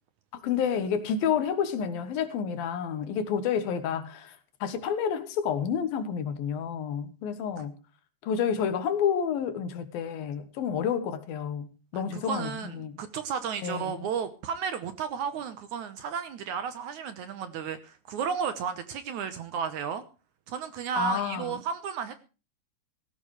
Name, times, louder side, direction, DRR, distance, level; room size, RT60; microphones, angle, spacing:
voice 1, 0.4-4.3 4.6-7.7 8.2-11.7 11.9-12.9 13.6-14.0 21.0-21.5, left 7 dB, 75° left, 3.1 m, -29 dB
voice 2, 11.9-20.0 20.5-22.1, right 7 dB, 70° right, 2.1 m, -33 dB
17.5 x 15.0 x 3.2 m
omnidirectional pair, 4.3 m